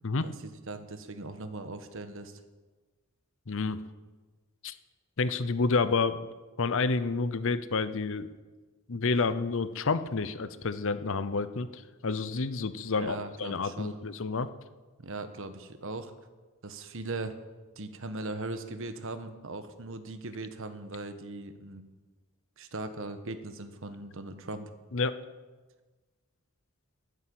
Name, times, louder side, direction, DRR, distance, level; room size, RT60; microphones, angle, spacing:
voice 1, 0.2-2.4 13.0-14.0 15.0-16.1 16.6-17.4 17.8-21.8 22.6-24.7, right 2 dB, 60° right, 9 dB, 1.3 m, -39 dB
voice 2, 3.5-3.8 4.6-4.8 5.2-6.3 6.6-8.3 8.9-14.5 24.9-25.2, left 4 dB, 60° left, 14 dB, 0.7 m, -29 dB
12.0 x 9.9 x 8.7 m, 1.3 s
head